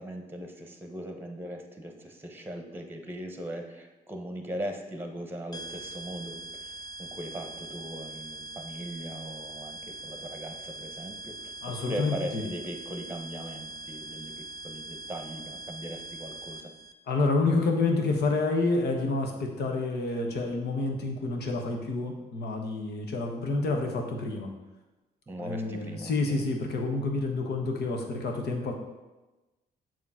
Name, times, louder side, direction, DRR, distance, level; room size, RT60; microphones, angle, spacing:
voice 1, 0.0-6.7 7.0-11.4 11.6-16.7 25.3-26.4, right 1 dB, 10° right, 4 dB, 1.0 m, -39 dB
sound 1, 5.5-16.9, right 2 dB, 25° left, 0.5 m, -42 dB
voice 2, 11.6-12.5 17.1-24.5 25.4-28.7, left 3 dB, 70° left, 2 dB, 1.1 m, -28 dB
7.2 x 3.1 x 5.5 m, 1.1 s
supercardioid pair, 70°, 17 cm